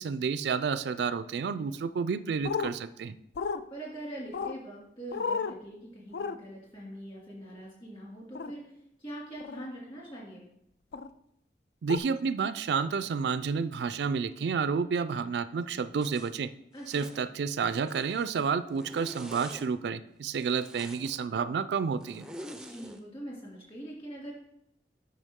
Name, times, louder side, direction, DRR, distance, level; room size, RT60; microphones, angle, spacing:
voice 1, 0.0-3.2 11.8-16.5 16.9-22.2, right 5 dB, 75° right, 13 dB, 0.3 m, -30 dB
sound 1, 2.4-2.7 3.4-3.6 4.3-4.6 5.1-5.6 6.1-6.4 8.4-8.5 9.4-9.7 10.9-11.1 11.9-12.0, left 5 dB, 70° left, 0.4 m, -32 dB
voice 2, 3.7-8.7 9.0-10.5 16.7-17.1 22.7-24.3, right 1 dB, 30° left, -3 dB, 2.4 m, -43 dB
Zipper (clothing), 16.0-16.3 16.8-17.2 17.7-18.4 18.7-19.7 20.3-21.2 22.0-23.0, right 1 dB, 5° right, 0.4 m, -46 dB
8.2 x 5.6 x 3.6 m, 0.77 s
head